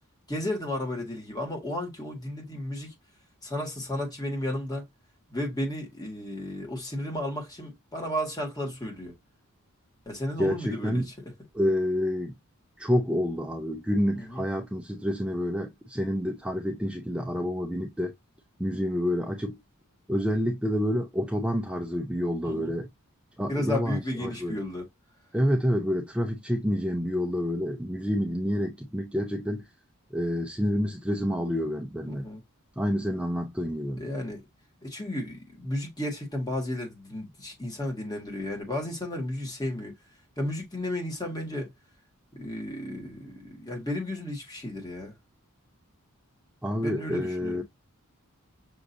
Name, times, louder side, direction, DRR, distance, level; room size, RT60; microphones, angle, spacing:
voice 1, 0.3-2.9 3.4-4.8 5.3-9.1 10.1-11.1 14.2-14.4 22.4-22.7 23.5-24.8 32.0-32.4 34.0-34.4 34.8-39.9 40.4-41.7 42.3-45.2 46.8-47.6, left 1 dB, 20° left, 1.8 m, -33 dB
voice 2, 10.4-11.1 11.5-12.3 12.8-18.1 18.6-19.6 20.1-22.9 23.4-24.6 25.3-29.7 30.1-32.3 32.8-34.0 46.6-47.6, equal, 5° right, 0.5 m, -28 dB
6.2 x 2.8 x 2.6 m
head